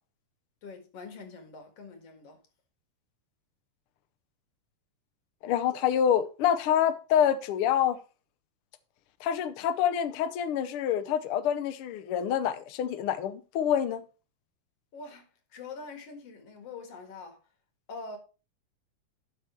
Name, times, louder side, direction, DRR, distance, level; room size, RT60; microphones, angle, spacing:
voice 1, 0.6-2.4 14.9-15.3 15.5-17.4 17.9-18.2, left 4 dB, 55° left, 2.7 m, -44 dB
voice 2, 5.4-8.0 9.2-14.0, left 9 dB, 85° left, 1.2 m, -27 dB
12.0 x 5.2 x 4.5 m
omnidirectional pair, 3.4 m